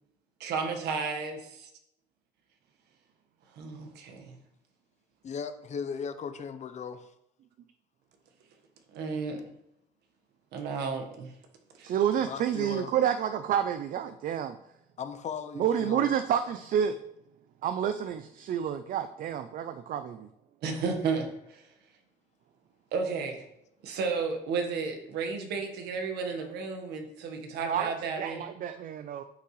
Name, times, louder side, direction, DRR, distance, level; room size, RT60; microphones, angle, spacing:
voice 1, 0.4-1.7 3.5-4.4 8.9-9.4 10.5-11.3 11.8-11.9 20.6-21.7 22.9-23.4 23.8-28.4, right 5 dB, 85° right, 5 dB, 1.4 m, -33 dB
voice 2, 5.2-7.1 12.3-12.9 15.0-16.1, left 6 dB, 45° left, 10 dB, 0.7 m, -37 dB
voice 3, 11.8-14.6 15.6-17.0 17.6-20.3 27.6-29.2, right 9 dB, 55° right, 10 dB, 0.5 m, -29 dB
9.8 x 5.8 x 3.2 m, 0.81 s
cardioid pair, 110°, 17 cm